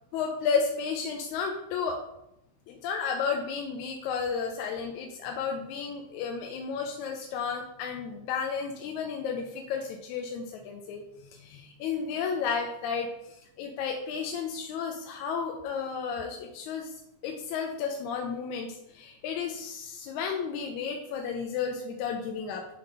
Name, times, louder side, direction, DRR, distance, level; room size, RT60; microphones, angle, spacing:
voice 1, 0.1-2.0 2.7-11.0 11.3-22.7, left 6 dB, 85° left, 3 dB, 1.9 m, -32 dB
5.8 x 3.5 x 5.2 m, 0.82 s
omnidirectional pair, 3.3 m